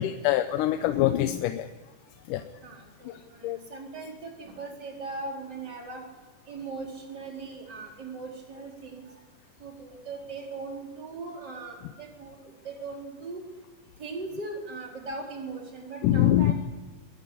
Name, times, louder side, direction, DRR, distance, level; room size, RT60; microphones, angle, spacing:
voice 1, 0.0-1.7 2.3-2.4 3.1-3.6 16.0-16.5, left 12 dB, 75° left, 8 dB, 2.3 m, -24 dB
voice 2, 2.6-6.0 6.5-9.0 9.6-12.4 12.6-13.4 14.0-16.5, right 3 dB, 30° right, 0 dB, 4.6 m, -39 dB
22.5 x 18.0 x 8.5 m, 1.2 s
omnidirectional pair, 3.9 m